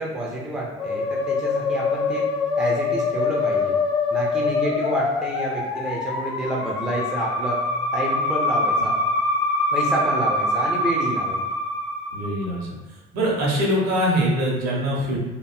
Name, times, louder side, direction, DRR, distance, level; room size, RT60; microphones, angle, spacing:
voice 1, 0.0-2.3 2.6-3.8 4.1-7.6 7.9-9.0 9.7-11.4, right 1 dB, 5° right, -4 dB, 0.4 m, -28 dB
Musical instrument, 0.8-12.6, left 3 dB, 60° left, 0.4 m, -24 dB
voice 2, 12.1-12.7 13.1-15.2, equal, 55° right, -3 dB, 0.8 m, -23 dB
2.5 x 2.1 x 2.4 m, 1.1 s
figure-of-eight pair, 55°, 33 cm